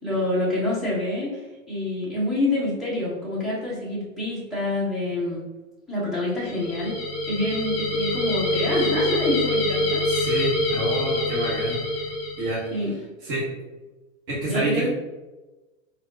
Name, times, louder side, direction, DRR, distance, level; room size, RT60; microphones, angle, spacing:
voice 1, 0.0-1.4 1.7-5.4 5.9-6.9 7.3-10.0 12.7-12.9 14.4-14.9, left 1 dB, ahead, -9 dB, 0.4 m, -27 dB
sound 1, 6.4-12.7, left 1 dB, 50° left, 0.9 m, -25 dB
voice 2, 10.1-11.8 12.4-12.6 13.3-13.5 14.3-14.8, right 1 dB, 40° right, -5 dB, 1.0 m, -27 dB
3.3 x 2.2 x 3.7 m, 1.1 s
hypercardioid pair, 135°, 41 cm